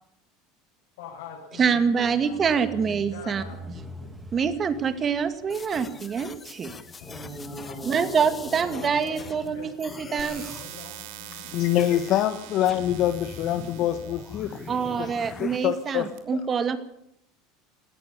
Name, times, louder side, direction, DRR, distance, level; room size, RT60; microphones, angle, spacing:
voice 1, 1.0-4.1 7.0-11.7, left 6 dB, 85° left, -1 dB, 6.3 m, -43 dB
sound 1, 1.6-6.2 7.0-10.4, right 1 dB, 10° right, 2.0 m, -43 dB
voice 2, 1.6-3.4 4.3-6.7 7.8-10.4 14.7-16.8, right 6 dB, 30° right, 10 dB, 2.3 m, -25 dB
sound 2, 5.5-9.5 9.8-10.7 11.8-12.2 12.7-15.6, left 4 dB, 20° left, 1.6 m, -43 dB
sound 3, 10.2-16.2, right 12 dB, 75° right, 3.1 m, -44 dB
voice 3, 11.5-14.6 15.0-16.4, left 11 dB, 50° left, 9 dB, 1.3 m, -25 dB
18.5 x 15.0 x 9.9 m, 0.75 s
supercardioid pair, 125°, 0 cm